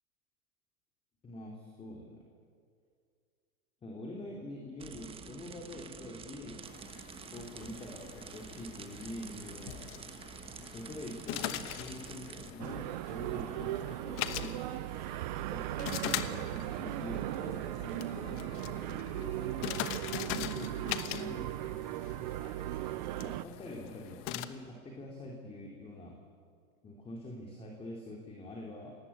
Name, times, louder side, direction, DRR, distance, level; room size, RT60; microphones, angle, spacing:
voice 1, 1.2-2.2 3.8-6.6 7.3-9.9 10.7-14.6 15.5-21.7 23.2-26.2 26.8-28.9, left 1 dB, 15° left, 0 dB, 3.1 m, -45 dB
sound 1, 4.8-12.5, right 6 dB, 15° right, 1.2 m, -48 dB
sound 2, 6.6-24.4, left 13 dB, 30° left, 1.2 m, -42 dB
sound 3, 12.6-23.4, right 15 dB, 35° right, 0.6 m, -37 dB
27.0 x 19.0 x 8.6 m, 2.1 s
hypercardioid pair, 140°, 42 cm